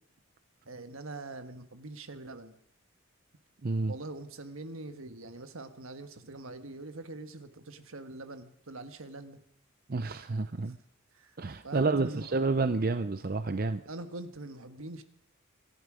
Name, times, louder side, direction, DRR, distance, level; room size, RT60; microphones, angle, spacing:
voice 1, 0.7-2.6 3.9-9.4 10.7-10.8 11.1-11.4 11.6-12.3 13.9-15.0, right 2 dB, 70° right, 9 dB, 1.5 m, -43 dB
voice 2, 3.6-3.9 9.9-10.8 11.4-13.8, right 3 dB, 45° right, 10 dB, 0.6 m, -29 dB
25.0 x 11.5 x 5.0 m, 0.66 s
head